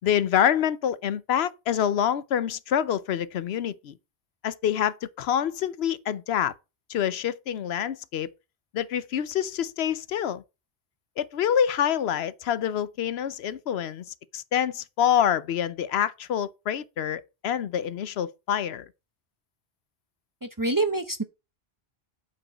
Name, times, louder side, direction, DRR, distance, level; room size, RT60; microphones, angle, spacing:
voice 1, 0.0-3.9 4.4-6.5 6.9-8.3 8.7-10.4 11.2-14.0 14.3-18.9, left 9 dB, 80° left, 0.9 m, -26 dB
voice 2, 20.4-21.2, right 2 dB, 25° right, 0.6 m, -26 dB
8.8 x 4.8 x 5.4 m
omnidirectional pair, 1.1 m